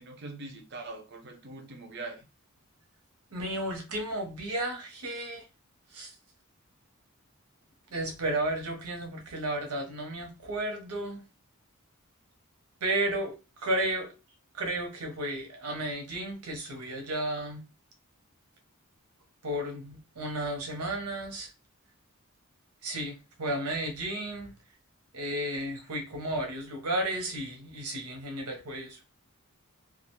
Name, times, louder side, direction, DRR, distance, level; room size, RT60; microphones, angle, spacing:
voice 1, 0.0-2.3, right 3 dB, 50° right, 0.5 m, -42 dB
voice 2, 3.3-5.4 5.9-6.1 7.9-11.2 12.8-13.3 13.6-14.1 14.5-17.6 19.4-21.5 22.8-24.5 25.1-29.0, right 1 dB, 90° right, 0.8 m, -33 dB
2.3 x 2.2 x 3.0 m
head